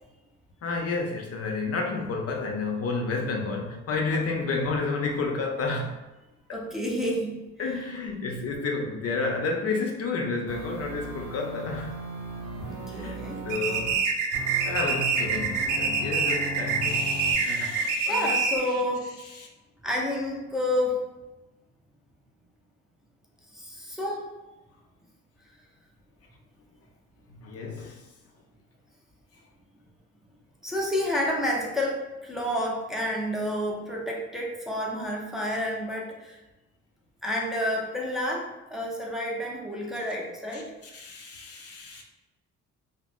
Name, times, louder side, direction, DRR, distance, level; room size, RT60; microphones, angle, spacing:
voice 1, 0.6-6.0 6.5-6.6 7.6-12.0 12.8-14.0 14.7-18.4 19.2-19.5 27.3-28.1 40.5-42.0, left 3 dB, 55° left, 1 dB, 0.5 m, -31 dB
voice 2, 6.5-7.4 12.7-13.4 18.1-19.2 19.8-21.0 23.5-24.3 30.6-36.4 37.2-40.6, left 1 dB, ahead, -3 dB, 0.6 m, -29 dB
sound 1, 10.5-13.9 14.3-17.3, right 2 dB, 70° right, 0.8 m, -37 dB
sound 2, 13.5-18.8, right 4 dB, 90° right, 0.5 m, -26 dB
2.5 x 2.1 x 3.4 m, 1.0 s
cardioid pair, 90°, 30 cm